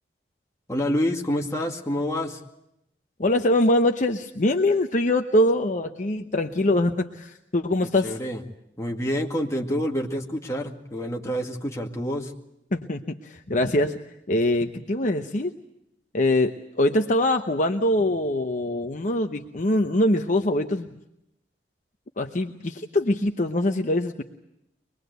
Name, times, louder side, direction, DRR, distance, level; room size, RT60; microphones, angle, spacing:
voice 1, 0.7-2.4 7.8-8.4 8.8-12.3, equal, 15° left, 0 dB, 2.1 m, -28 dB
voice 2, 3.2-8.1 12.7-14.0 14.3-15.5 16.1-16.5 16.8-20.9 22.2-24.2, left 1 dB, 45° left, 5 dB, 0.9 m, -23 dB
24.0 x 21.0 x 8.1 m, 0.84 s
head